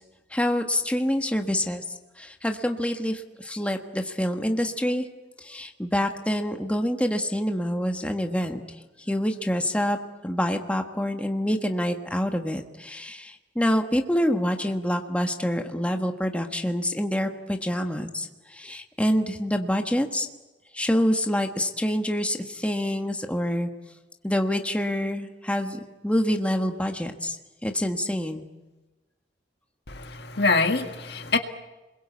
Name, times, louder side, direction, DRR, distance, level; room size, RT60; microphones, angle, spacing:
voice 1, 0.3-1.8 2.2-5.0 5.4-8.6 9.1-20.3 20.7-23.7 24.2-27.4 27.6-28.4, equal, 5° left, 4 dB, 1.4 m, -26 dB
voice 2, 29.9-31.4, left 3 dB, 60° left, 6 dB, 1.9 m, -24 dB
29.5 x 22.0 x 8.3 m, 1.1 s
head